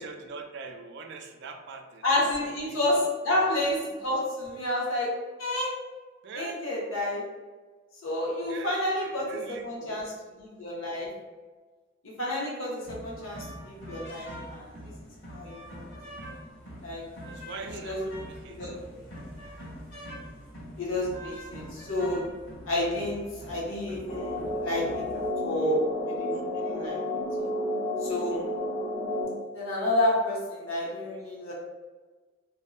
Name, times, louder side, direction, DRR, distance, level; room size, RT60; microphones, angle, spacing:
voice 1, 0.0-3.0 6.2-6.6 8.5-10.0 17.3-18.8 26.3-26.4, right 4 dB, 60° right, 5 dB, 0.3 m, -43 dB
voice 2, 2.0-5.1 5.4-5.7 6.3-7.2 8.0-11.1 12.0-14.7 15.3-15.9 16.8-17.0 17.6-18.2 18.4-18.7 20.8-22.3 22.6-27.0 28.0-28.4 29.5-31.5, left 1 dB, 85° left, -4 dB, 0.8 m, -30 dB
sound 1, 12.8-25.3, equal, 65° left, 1.4 m, -44 dB
sound 2, 24.1-29.2, left 1 dB, 35° left, 1.2 m, -31 dB
2.5 x 2.1 x 2.4 m, 1.3 s
head